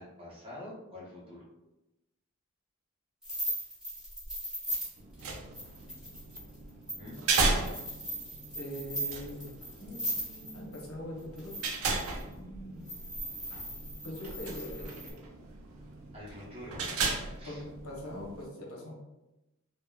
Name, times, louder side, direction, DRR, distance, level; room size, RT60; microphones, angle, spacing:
voice 1, 0.0-1.4 7.0-7.3 16.1-17.1 17.4-17.6, left 1 dB, 25° right, -5 dB, 0.7 m, -46 dB
sound 1, 3.2-10.8 11.4-12.2 12.9-15.1, equal, 5° right, 1.1 m, -38 dB
sound 2, 5.0-18.4, right 4 dB, 75° right, 0.5 m, -36 dB
voice 2, 8.5-9.5 9.8-11.7 12.3-12.9 14.0-15.3 17.4-19.0, left 1 dB, 75° left, -2 dB, 0.8 m, -42 dB
3.5 x 2.0 x 2.2 m, 0.98 s
head